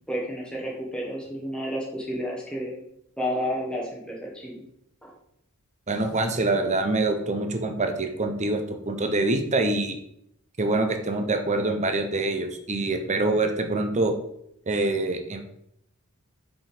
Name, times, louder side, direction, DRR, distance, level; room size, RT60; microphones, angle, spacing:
voice 1, 0.1-2.8 3.2-4.6 5.0-5.1, equal, 5° left, -4 dB, 1.3 m, -31 dB
voice 2, 5.9-10.0 10.6-14.1 14.7-15.4, right 2 dB, 30° right, 6 dB, 0.9 m, -25 dB
5.5 x 5.3 x 5.0 m, 0.74 s
head